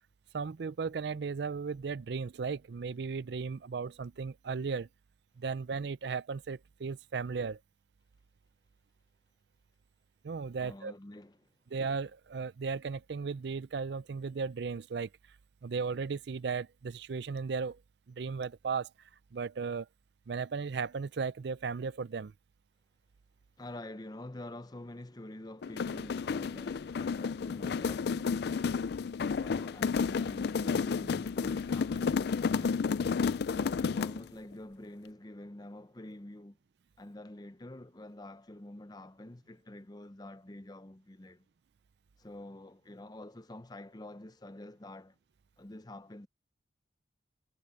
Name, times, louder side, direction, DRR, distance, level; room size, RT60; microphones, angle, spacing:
voice 1, 0.3-4.9 5.4-7.6 10.2-10.9 11.7-15.1 15.6-17.8 18.2-18.9 19.3-19.9 20.3-22.3, right 5 dB, 60° right, 0.4 m, -36 dB
voice 2, 10.6-11.5 23.6-28.6 29.4-32.9 33.5-36.6 37.0-41.5 42.2-45.1 45.6-46.3, left 1 dB, 20° left, 0.7 m, -47 dB
sound 1, 25.6-34.3, left 5 dB, 60° left, 0.4 m, -31 dB
head